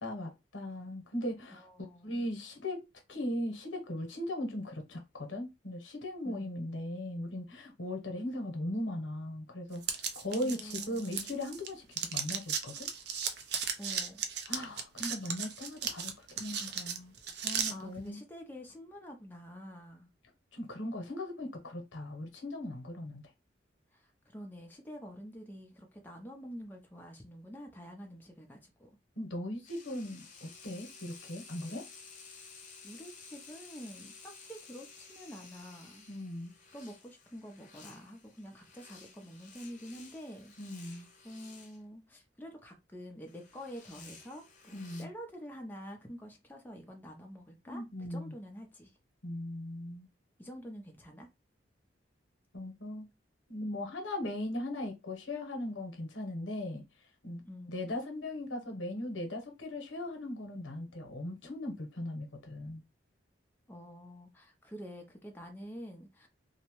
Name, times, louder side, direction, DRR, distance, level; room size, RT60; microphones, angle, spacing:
voice 1, 0.0-1.7 2.0-2.8 3.1-12.9 14.5-17.1 17.4-18.2 20.5-23.2 29.2-31.8 36.1-36.5 40.6-41.1 44.7-45.1 47.7-48.3 49.2-50.1 52.5-53.1 53.5-56.8 57.2-57.4 57.7-62.8, left 1 dB, 90° left, 0.8 m, -38 dB
voice 2, 1.6-2.3 6.2-6.6 10.0-11.4 13.8-14.3 17.4-20.1 23.9-29.0 31.6-31.8 32.8-36.1 36.7-40.5 40.8-48.9 50.4-51.3 57.4-57.8 63.7-66.3, equal, 10° left, 0.5 m, -48 dB
sound 1, 9.8-11.7 11.9-17.7, right 7 dB, 60° right, 0.5 m, -36 dB
sound 2, 29.6-41.8 43.3-45.0, left 4 dB, 40° left, 0.7 m, -54 dB
2.7 x 2.1 x 2.9 m
head